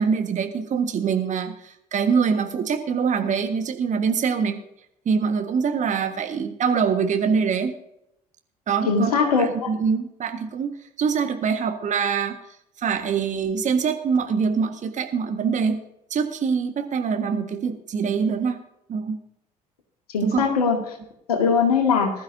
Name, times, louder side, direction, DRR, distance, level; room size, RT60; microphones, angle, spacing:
voice 1, 0.0-4.6 5.0-7.7 8.7-10.7 11.0-12.4 12.8-15.8 16.1-18.6 18.9-19.2 20.2-20.4, right 6 dB, 40° right, 6 dB, 1.6 m, -24 dB
voice 2, 8.9-9.5 20.1-20.8 21.3-22.1, left 5 dB, 75° left, 4 dB, 2.1 m, -20 dB
20.0 x 12.0 x 2.7 m, 0.78 s
figure-of-eight pair, 55°, 20 cm